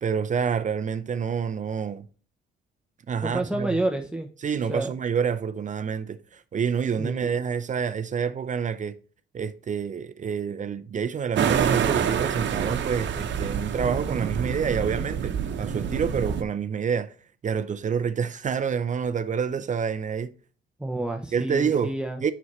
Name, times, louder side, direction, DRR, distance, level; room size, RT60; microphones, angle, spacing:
voice 1, 0.0-2.0 3.1-3.8 4.4-9.0 9.3-17.1 17.4-20.3 21.3-22.3, right 6 dB, 40° right, 0.5 m, -28 dB
voice 2, 3.2-4.3 4.7-4.9 7.0-7.4 20.8-22.2, right 2 dB, 5° right, 0.8 m, -29 dB
sound 1, 11.4-16.4, right 7 dB, 65° right, 0.9 m, -27 dB
7.0 x 6.1 x 3.1 m
cardioid pair, 90°, 20 cm